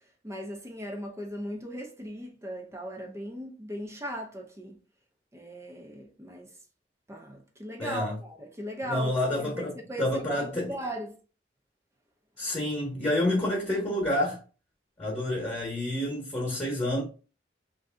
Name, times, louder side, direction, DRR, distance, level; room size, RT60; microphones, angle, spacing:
voice 1, 0.2-4.8 5.3-6.5 7.1-11.2, right 1 dB, 15° right, 0.5 m, -38 dB
voice 2, 7.8-8.1 8.8-10.7 12.4-14.4 15.0-17.0, left 1 dB, 25° left, 1.1 m, -29 dB
3.2 x 2.6 x 3.6 m
head